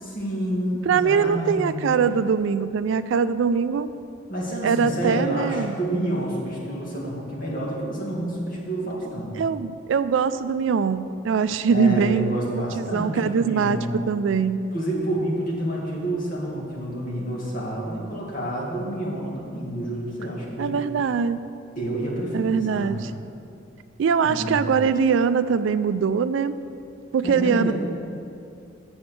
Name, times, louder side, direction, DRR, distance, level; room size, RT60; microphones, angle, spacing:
voice 1, 0.0-1.8 4.3-9.3 11.7-14.1 14.7-20.8 21.8-23.0 24.2-24.5 27.2-27.7, right 1 dB, 45° left, -4 dB, 2.1 m, -29 dB
voice 2, 0.9-3.9 4.6-5.7 9.4-13.8 14.1-14.7 20.6-21.4 22.3-23.1 24.0-26.6 27.1-27.7, right 6 dB, 75° right, 13 dB, 0.3 m, -22 dB
7.0 x 6.9 x 6.9 m, 2.6 s
head